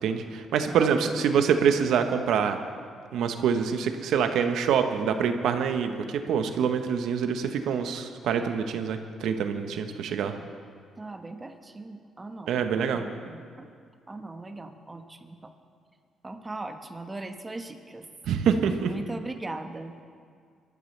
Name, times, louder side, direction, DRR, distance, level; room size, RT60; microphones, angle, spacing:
voice 1, 0.0-2.6 3.1-10.3 12.5-13.0 18.3-18.9, right 7 dB, 80° right, 7 dB, 1.0 m, -25 dB
voice 2, 0.7-1.2 11.0-12.6 12.9-13.7 14.1-15.5 16.2-18.1 18.8-20.1, right 2 dB, 20° right, 6 dB, 1.2 m, -39 dB
22.0 x 13.5 x 3.3 m, 2.1 s
cardioid pair, 90°, 0 cm